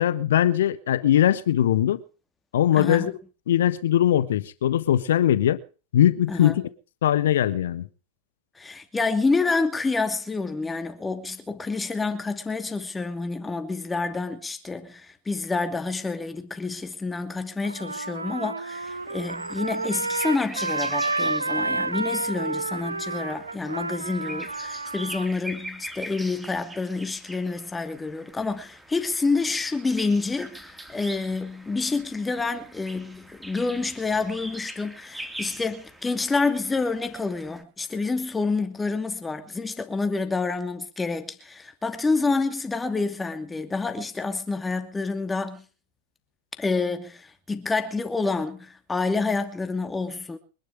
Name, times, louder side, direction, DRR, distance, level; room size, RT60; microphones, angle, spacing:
voice 1, 0.0-2.0 2.5-3.1 3.5-5.6 5.9-6.6 7.0-7.9, left 11 dB, 60° left, 1.2 m, -21 dB
voice 2, 2.7-3.1 6.3-6.6 8.6-45.6 46.6-50.4, left 3 dB, 10° left, 2.5 m, -28 dB
Trumpet, 17.6-25.3, right 3 dB, 80° right, 0.8 m, -30 dB
sound 1, 18.8-37.6, right 1 dB, 5° right, 3.6 m, -43 dB
24.5 x 11.5 x 4.9 m
figure-of-eight pair, 90°, 0 cm